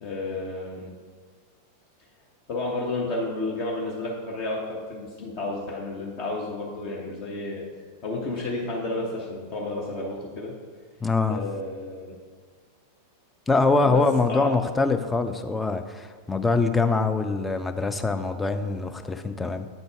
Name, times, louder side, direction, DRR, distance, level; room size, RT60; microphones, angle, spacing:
voice 1, 0.0-0.9 2.5-7.6 8.0-10.5 11.3-12.2 13.8-14.5, left 2 dB, 40° left, -2 dB, 0.8 m, -31 dB
voice 2, 11.0-11.4 13.5-19.7, left 3 dB, 10° left, 7 dB, 0.4 m, -24 dB
8.3 x 4.0 x 3.5 m, 1.5 s
figure-of-eight pair, 90°, 0 cm